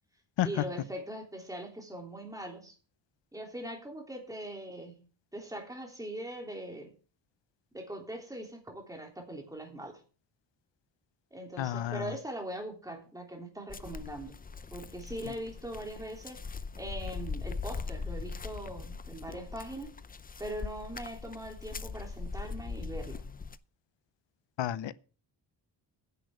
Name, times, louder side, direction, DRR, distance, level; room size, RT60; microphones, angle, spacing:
voice 1, 0.4-2.7 3.3-6.9 7.7-10.0 11.3-14.4 14.7-16.4 16.8-19.9 20.4-23.2, right 1 dB, 10° right, 3.3 m, -41 dB
voice 2, 11.6-12.1 24.6-24.9, left 12 dB, 85° left, 0.8 m, -31 dB
sound 1, 13.7-23.6, left 4 dB, 20° left, 0.5 m, -40 dB
10.0 x 6.4 x 8.1 m
wide cardioid pair, 140°, 43 cm